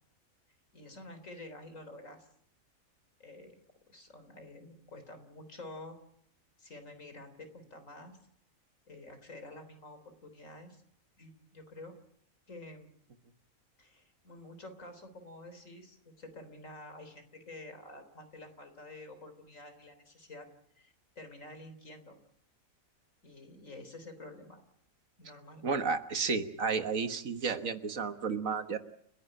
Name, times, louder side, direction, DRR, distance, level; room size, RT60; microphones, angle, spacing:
voice 1, 0.7-2.3 3.2-3.6 3.9-6.0 6.6-8.2 8.9-10.8 11.2-11.9 12.5-12.9 13.8-20.5 20.8-22.2 23.2-24.6 25.2-25.8, left 2 dB, 70° left, 8 dB, 4.0 m, -49 dB
voice 2, 25.6-28.8, right 5 dB, 70° right, 9 dB, 1.8 m, -32 dB
30.0 x 11.0 x 10.0 m, 0.71 s
omnidirectional pair, 1.4 m